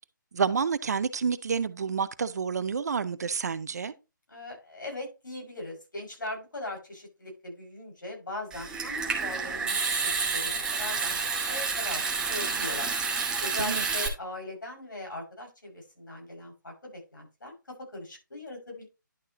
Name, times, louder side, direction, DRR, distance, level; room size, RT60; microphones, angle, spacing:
voice 1, 0.3-3.9 13.6-13.8, right 6 dB, 55° right, 0.7 m, -29 dB
voice 2, 4.3-12.9 13.4-18.9, left 2 dB, 70° left, 5.7 m, -40 dB
Water tap faucet / Sink (filling or washing) / Trickle dribble, 8.5-14.1, right 5 dB, 5° right, 0.9 m, -29 dB
11.0 x 6.3 x 2.9 m
figure-of-eight pair, 150°, 11 cm